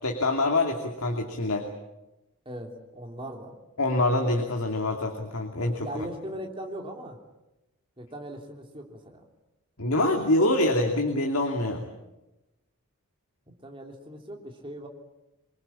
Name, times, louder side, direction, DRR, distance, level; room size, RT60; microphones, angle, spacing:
voice 1, 0.0-1.7 3.8-5.9 9.8-11.8, left 2 dB, 80° left, 3 dB, 2.7 m, -25 dB
voice 2, 2.4-3.5 5.8-7.2 8.0-9.2 13.6-14.9, right 1 dB, 25° right, 2 dB, 3.3 m, -39 dB
25.5 x 22.0 x 8.7 m, 0.97 s
head